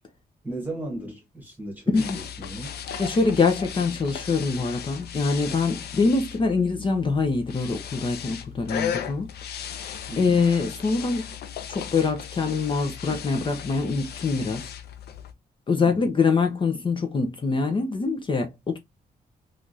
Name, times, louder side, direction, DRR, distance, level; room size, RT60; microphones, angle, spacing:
voice 1, 0.4-2.8 10.1-10.5 15.8-16.1, right 1 dB, 10° right, 1.4 m, -36 dB
sound 1, 1.9-15.3, left 9 dB, 90° left, 0.5 m, -36 dB
voice 2, 3.0-9.3 9.6-11.3 11.7-14.7 15.7-18.8, left 4 dB, 30° left, 0.6 m, -24 dB
3.4 x 2.4 x 2.6 m
wide cardioid pair, 140°, 16 cm